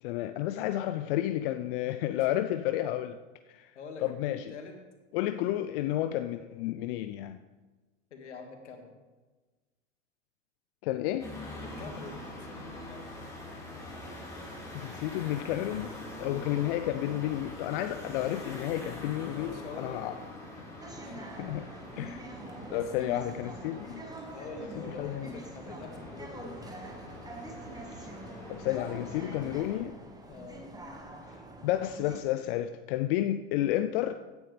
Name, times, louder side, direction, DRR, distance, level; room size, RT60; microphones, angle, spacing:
voice 1, 0.0-3.2 3.5-3.7 4.0-4.5 5.1-7.4 10.8-11.3 14.7-15.9 16.2-20.2 21.4-21.7 22.0-22.2 22.7-24.0 25.0-25.3 27.9-28.1 28.5-30.0 31.6-34.1, left 13 dB, 50° left, 10 dB, 0.6 m, -31 dB
voice 2, 3.7-4.8 8.1-9.0 11.5-13.1 18.6-19.0 19.3-20.7 21.0-21.2 21.9-22.1 22.6-22.9 24.3-26.6 28.7-28.9 30.3-30.7, left 4 dB, 75° left, 4 dB, 2.1 m, -46 dB
sound 1, 11.2-29.7, left 1 dB, 10° left, 4.4 m, -44 dB
sound 2, 20.8-32.2, right 1 dB, 10° right, 1.6 m, -45 dB
16.5 x 9.6 x 3.4 m, 1.2 s
hypercardioid pair, 95°, 35 cm